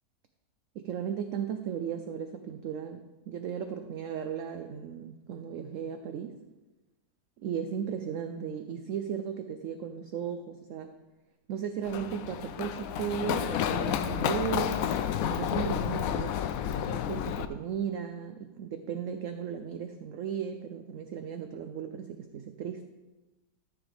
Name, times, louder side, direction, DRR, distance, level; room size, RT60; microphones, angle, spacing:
voice 1, 0.7-6.4 7.4-11.0 11.5-14.8 15.3-16.3 16.9-22.8, right 8 dB, 70° right, 7 dB, 0.7 m, -36 dB
Run, 11.8-17.4, left 9 dB, 70° left, 0.8 m, -30 dB
13.0 x 7.0 x 3.4 m, 1.1 s
omnidirectional pair, 1.9 m